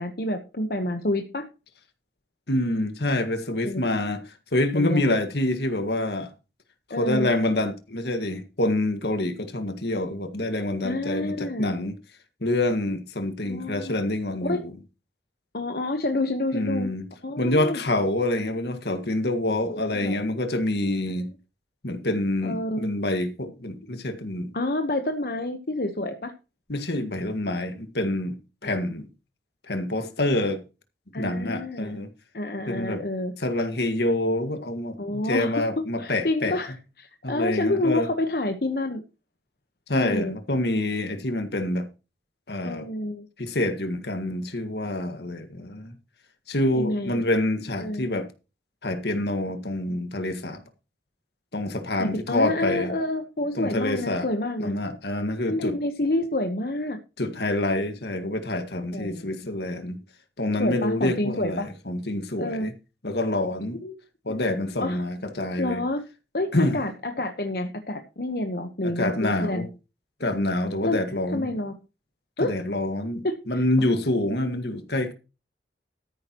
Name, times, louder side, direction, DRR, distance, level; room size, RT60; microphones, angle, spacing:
voice 1, 0.0-1.5 3.6-3.8 4.7-5.0 6.9-7.3 10.8-11.7 13.4-13.9 14.4-14.6 15.5-16.9 17.2-17.8 19.7-20.3 21.2-21.3 22.4-23.1 24.5-26.3 28.6-28.8 31.1-32.0 32.3-33.3 35.0-35.5 36.0-39.0 39.9-40.3 42.6-43.3 46.7-47.2 47.8-48.0 51.9-54.7 55.5-57.0 58.9-59.3 60.6-61.7 62.4-62.7 63.8-64.0 64.3-64.4 64.8-65.0 65.6-66.0 66.3-69.7 70.8-71.0 71.3-71.7 72.4-72.5 73.2-73.4, left 1 dB, 55° left, 1.1 m, -28 dB
voice 2, 2.5-4.2 4.5-6.3 7.0-11.9 12.4-14.7 16.5-17.1 17.4-21.3 21.8-24.5 26.7-28.4 28.6-29.1 29.7-30.6 31.2-32.1 32.7-33.0 33.4-36.6 37.2-38.1 39.9-41.9 42.5-42.9 43.4-45.9 46.5-48.3 48.8-50.6 51.5-52.9 53.6-54.3 54.6-55.8 57.2-60.0 60.4-62.7 63.0-63.8 64.3-65.8 66.5-66.8 68.8-69.7 70.2-71.5 72.4-75.1, left 1 dB, 70° left, 1.8 m, -26 dB
13.5 x 10.5 x 3.0 m
head